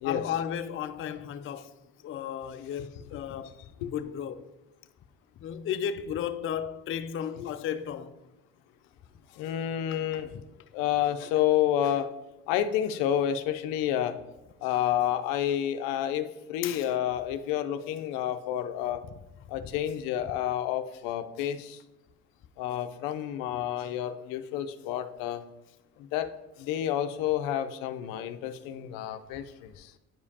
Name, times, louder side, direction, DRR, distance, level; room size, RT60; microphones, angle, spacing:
voice 1, 0.0-1.7 2.0-3.6 3.9-4.4 5.4-8.1 9.9-10.0 16.6-16.9, left 9 dB, 40° left, 0.5 m, -34 dB
voice 2, 9.3-10.3 10.7-12.1 12.5-14.2 14.6-19.0 19.5-21.8 22.6-25.4 26.0-26.3 26.6-29.9, left 11 dB, 80° left, 0.6 m, -29 dB
9.3 x 4.9 x 2.8 m
supercardioid pair, 85°, 33 cm